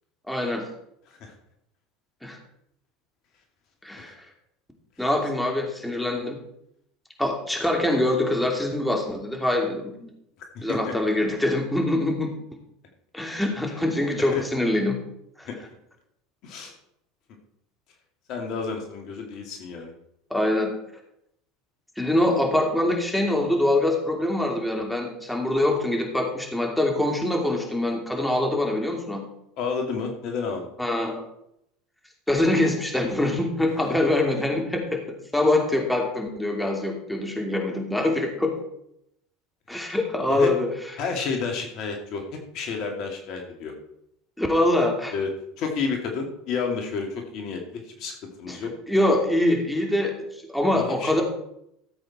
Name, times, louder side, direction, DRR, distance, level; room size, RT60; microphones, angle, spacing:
voice 1, 0.3-0.6 2.2-2.4 3.8-4.1 5.0-6.4 7.2-10.1 10.6-12.3 13.1-15.0 15.4-15.5 20.3-20.7 22.0-29.2 30.8-31.2 32.3-35.0 35.3-38.5 39.7-40.7 44.4-45.1 48.5-48.6 48.9-50.1 50.5-51.2, left 1 dB, 5° left, 1 dB, 2.9 m, -24 dB
voice 2, 16.4-16.7 18.3-19.9 29.6-30.7 40.3-40.5 41.0-43.7 45.1-45.3 45.6-48.7 50.7-51.2, left 5 dB, 55° left, 3 dB, 2.5 m, -31 dB
14.5 x 7.9 x 4.3 m, 0.76 s
hypercardioid pair, 80°, 0 cm